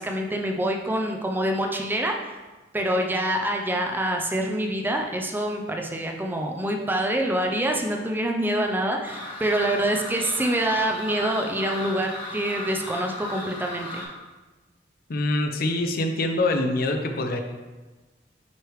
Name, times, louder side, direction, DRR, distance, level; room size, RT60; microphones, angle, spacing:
voice 1, 0.0-2.4 2.7-14.1, right 1 dB, 10° right, 2 dB, 0.4 m, -26 dB
sound 1, 9.0-14.0, left 1 dB, 30° left, 1.2 m, -36 dB
voice 2, 15.1-17.4, left 2 dB, 55° left, 5 dB, 0.6 m, -24 dB
9.2 x 3.3 x 3.1 m, 1.2 s
head